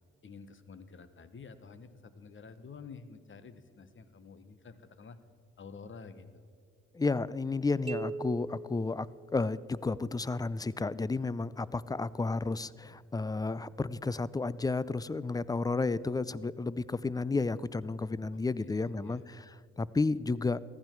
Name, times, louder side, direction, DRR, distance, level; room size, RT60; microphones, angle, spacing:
voice 1, 0.2-5.2 5.6-6.5 18.6-19.2, left 5 dB, 40° left, 12 dB, 1.1 m, -50 dB
voice 2, 6.9-9.1 9.3-20.6, left 3 dB, 15° left, 19 dB, 0.4 m, -32 dB
sound 1, 7.9-9.8, right 3 dB, 20° right, 0.7 m, -41 dB
15.0 x 11.5 x 4.5 m, 2.3 s
supercardioid pair, 55°, 30 cm